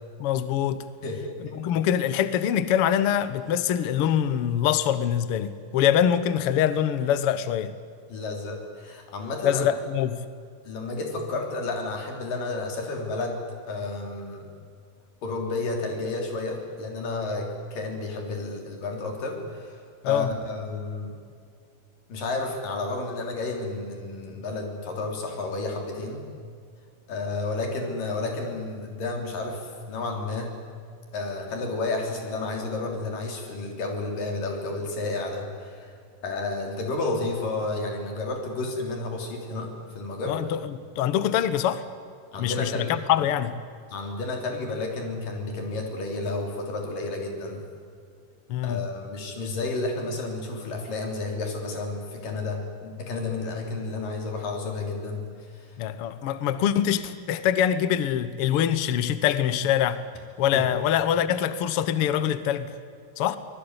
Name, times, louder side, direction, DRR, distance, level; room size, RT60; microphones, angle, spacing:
voice 1, 0.2-0.8 1.4-7.7 9.4-10.2 20.0-20.3 40.3-41.8 42.4-43.6 48.5-48.9 55.8-60.0 60.4-62.7 63.2-63.4, left 10 dB, 85° left, 13 dB, 1.2 m, -24 dB
voice 2, 1.0-1.6 8.1-9.7 10.7-14.5 15.2-21.2 22.1-26.3 27.1-30.5 31.1-35.9 36.2-40.4 42.3-43.0 43.9-47.7 48.6-55.2 55.5-55.8 60.5-60.7, left 3 dB, 65° left, 3 dB, 5.1 m, -31 dB
24.5 x 20.0 x 9.8 m, 2.3 s
omnidirectional pair, 4.2 m